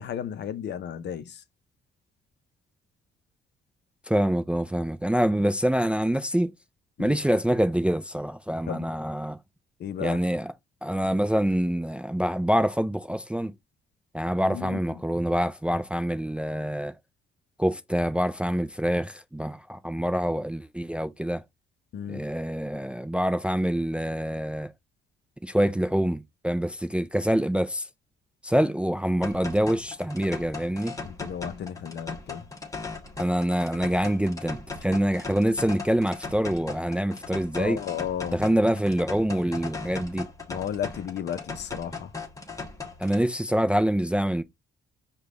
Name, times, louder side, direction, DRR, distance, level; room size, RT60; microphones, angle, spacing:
voice 1, 0.0-1.4 7.0-7.2 8.7-8.9 9.8-10.2 14.4-14.8 21.9-22.2 31.0-32.5 37.6-38.4 40.5-42.1, left 9 dB, 60° left, 0.6 m, -33 dB
voice 2, 4.1-6.5 7.0-9.4 10.0-10.5 10.8-13.5 14.1-16.9 17.6-21.4 22.1-24.7 25.4-27.9 28.4-31.0 33.2-37.8 38.3-40.3 43.0-44.4, equal, 5° right, 0.3 m, -25 dB
sound 1, 29.2-43.2, left 3 dB, 15° left, 1.0 m, -38 dB
5.0 x 2.3 x 3.6 m
cardioid pair, 90°, 20 cm